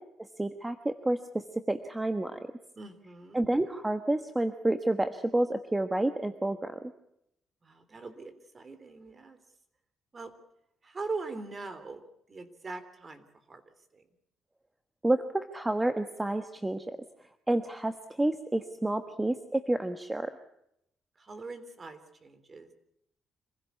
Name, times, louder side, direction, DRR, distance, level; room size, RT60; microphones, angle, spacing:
voice 1, 0.2-2.4 3.3-6.8 15.0-17.0 17.5-20.3, right 1 dB, 15° right, 8 dB, 1.3 m, -29 dB
voice 2, 2.8-3.4 7.6-9.4 10.1-10.3 10.8-14.0 21.2-22.7, right 3 dB, 35° right, 11 dB, 3.5 m, -42 dB
26.5 x 16.0 x 8.4 m, 0.78 s
cardioid pair, 90°, 0 cm